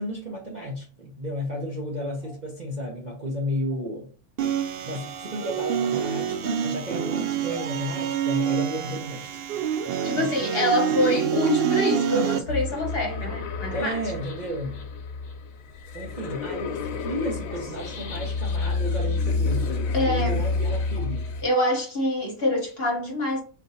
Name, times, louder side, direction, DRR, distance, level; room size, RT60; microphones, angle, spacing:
voice 1, 0.0-4.1 4.8-10.3 13.7-14.8 15.9-19.8 20.0-21.2, equal, 40° right, 0.8 m, -33 dB
sound 1, 4.4-12.4, right 8 dB, 80° right, 0.5 m, -27 dB
voice 2, 10.0-14.0 19.9-20.4 21.4-23.4, left 1 dB, 45° left, 1.2 m, -25 dB
sound 2, 12.5-21.4, left 3 dB, 70° left, 1.1 m, -29 dB
4.2 x 2.6 x 4.0 m
omnidirectional pair, 1.5 m